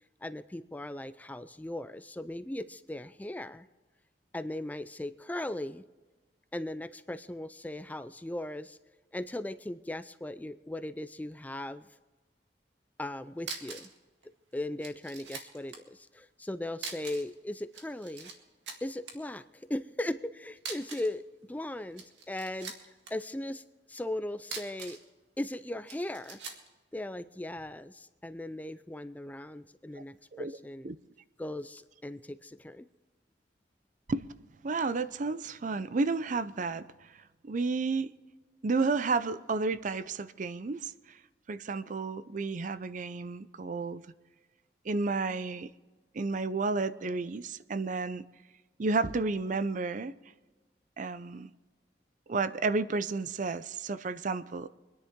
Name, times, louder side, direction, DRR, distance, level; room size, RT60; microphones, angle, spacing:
voice 1, 0.2-3.7 4.3-5.9 6.5-8.8 9.1-11.9 13.0-13.9 14.5-18.3 18.8-22.7 23.1-23.6 23.9-25.0 25.4-26.4 26.9-30.9 31.4-32.9, left 1 dB, 10° left, 0.4 m, -38 dB
sound 1, 13.1-13.2 13.4-14.0 14.2-14.3 14.8-15.8 16.8-17.3 17.6-18.3 18.7-19.1 20.6-21.2 21.8-23.1 24.4-25.1 25.9-26.7, right 5 dB, 85° right, 2.0 m, -42 dB
voice 2, 34.6-36.8 37.4-38.1 38.6-40.9 41.5-44.0 44.8-45.7 46.1-48.2 48.8-50.2 51.0-51.5 52.3-54.7, right 3 dB, 45° right, 0.5 m, -31 dB
25.5 x 10.5 x 3.7 m
head